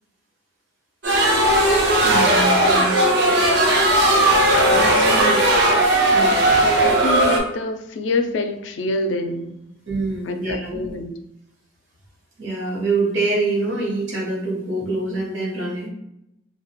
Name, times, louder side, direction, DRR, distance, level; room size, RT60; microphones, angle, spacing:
sound 1, 1.0-7.4, right 1 dB, 60° right, 0.6 m, -17 dB
voice 1, 2.0-2.9 4.7-5.4 6.1-6.4 9.9-10.8 12.4-15.9, right 2 dB, 80° right, -4 dB, 1.3 m, -25 dB
voice 2, 6.6-9.5 10.2-11.1, left 2 dB, 70° left, 6 dB, 0.4 m, -26 dB
3.9 x 2.2 x 2.2 m, 0.79 s
head